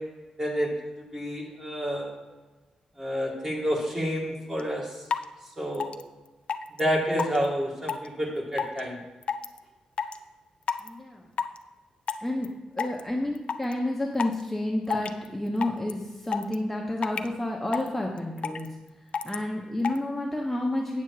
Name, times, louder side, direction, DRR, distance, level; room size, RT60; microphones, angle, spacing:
voice 1, 0.4-2.1 3.0-4.8 5.6-5.9 6.8-9.0, equal, 25° right, -2 dB, 2.3 m, -29 dB
sound 1, 4.6-4.7 5.1-5.2 5.7-6.0 6.5-6.8 7.2-7.5 7.9-8.1 8.6-8.8 9.2-9.6 10.0-10.2 10.7-10.9 11.4-11.6 12.1-12.5 12.8-13.0 13.4-13.7 14.2-14.4 14.9-15.3 15.6-15.9 16.3-16.5 17.0-17.3 17.7-17.9 18.2-18.7 19.1-19.4 19.8-20.0, left 6 dB, 55° left, 0.5 m, -29 dB
voice 2, 10.8-11.3 12.2-18.7 19.2-21.0, left 1 dB, 5° left, -2 dB, 1.0 m, -30 dB
8.3 x 7.3 x 4.8 m, 1.2 s
cardioid pair, 100°, 2 cm